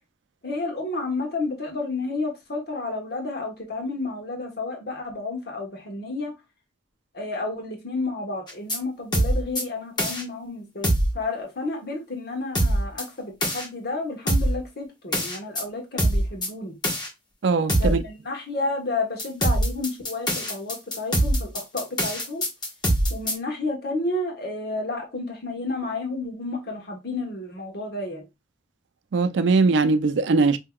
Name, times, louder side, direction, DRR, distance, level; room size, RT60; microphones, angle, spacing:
voice 1, 0.4-6.3 7.1-16.8 17.8-22.4 23.1-28.2, left 2 dB, 55° left, 1.1 m, -31 dB
sound 1, 8.5-8.8 9.1-9.6 10.0-10.2 10.8-11.1 12.5-13.0 13.4-13.6 14.3-14.6 15.1-15.6 16.0-16.5 16.8-17.1 17.7-18.0 19.2-23.3, right 1 dB, 25° left, 1.1 m, -23 dB
voice 2, 17.4-18.0 29.1-30.6, right 4 dB, 75° right, 0.4 m, -20 dB
5.6 x 2.8 x 2.2 m
head